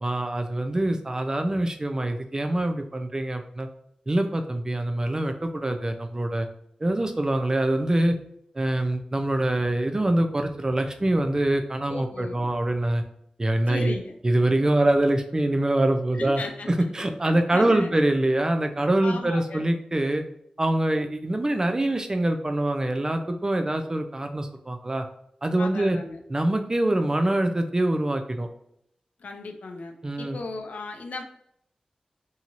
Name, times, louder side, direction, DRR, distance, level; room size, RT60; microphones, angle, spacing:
voice 1, 0.0-3.7 4.1-6.5 6.8-8.2 8.6-13.0 13.4-14.0 14.2-16.4 16.9-20.2 20.6-25.1 25.4-26.0 26.3-28.5 30.0-30.4, right 1 dB, 25° right, 6 dB, 0.4 m, -24 dB
voice 2, 11.9-12.5 13.6-14.2 16.1-18.0 19.0-19.7 25.6-26.2 29.2-31.2, left 3 dB, 80° left, 5 dB, 0.4 m, -36 dB
3.0 x 2.7 x 2.5 m, 0.74 s
wide cardioid pair, 80°, 2 cm